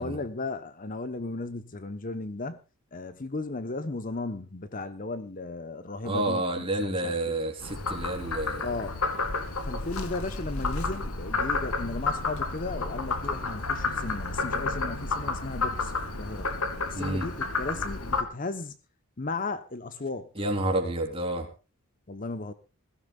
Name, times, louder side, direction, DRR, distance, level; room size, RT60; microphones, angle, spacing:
voice 1, 0.0-2.6 2.9-7.3 8.6-8.9 9.6-16.5 16.8-18.8 19.2-20.3 22.1-22.5, left 3 dB, 40° left, 0.9 m, -35 dB
voice 2, 6.0-8.7 17.0-17.3 20.4-21.5, right 1 dB, 25° right, 3.8 m, -29 dB
Frog, 7.6-18.2, left 3 dB, 85° left, 2.4 m, -31 dB
21.5 x 16.0 x 2.4 m
head